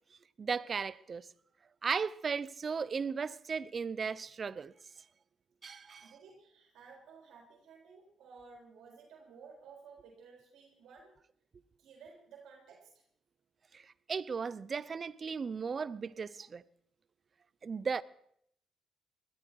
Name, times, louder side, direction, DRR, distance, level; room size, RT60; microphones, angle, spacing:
voice 1, 0.4-1.3 1.8-4.7 5.6-6.1 13.7-16.6 17.6-18.0, right 5 dB, 40° right, 0.6 m, -36 dB
voice 2, 6.0-11.1 11.8-13.0, right 5 dB, 80° right, 4.1 m, -55 dB
20.0 x 13.5 x 4.7 m
cardioid pair, 90°, 0 cm